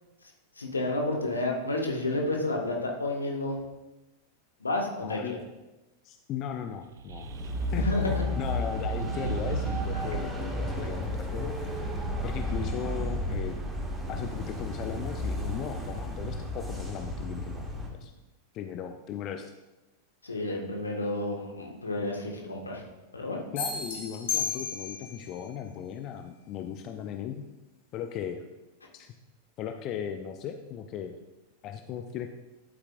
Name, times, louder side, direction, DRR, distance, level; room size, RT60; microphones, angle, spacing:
voice 1, 0.6-3.6 4.6-5.4 7.8-8.2 20.2-22.8 23.1-23.4, left 2 dB, 75° left, 1 dB, 1.5 m, -30 dB
voice 2, 5.0-5.4 6.0-7.3 7.7-7.9 8.4-11.6 12.2-13.6 14.1-17.7 18.0-18.1 18.5-19.5 23.5-27.5 27.9-28.4 28.9-29.1 29.6-31.2 31.6-32.3, left 8 dB, 35° left, 6 dB, 0.5 m, -37 dB
sound 1, 6.8-10.5, right 8 dB, 65° right, 0.4 m, -35 dB
sound 2, 7.2-17.9, left 2 dB, 10° right, 1.7 m, -33 dB
sound 3, 23.6-25.2, left 7 dB, 55° left, 1.7 m, -32 dB
11.0 x 8.1 x 2.5 m, 1.0 s
figure-of-eight pair, 90°, 0 cm